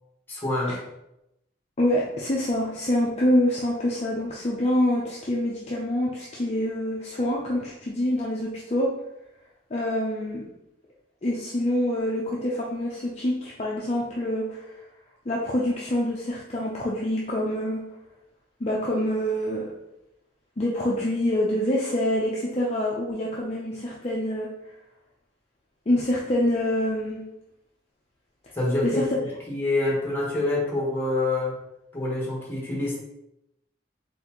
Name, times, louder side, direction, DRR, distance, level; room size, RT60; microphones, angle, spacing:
voice 1, 0.3-0.8 28.5-31.6 31.9-33.0, left 2 dB, 10° left, -4 dB, 1.2 m, -26 dB
voice 2, 1.8-8.9 9.7-10.4 11.2-14.7 15.3-17.8 18.6-19.7 20.6-24.5 25.9-27.2 28.8-29.0, left 1 dB, 35° left, -4 dB, 0.5 m, -26 dB
4.1 x 3.5 x 2.9 m, 0.87 s
head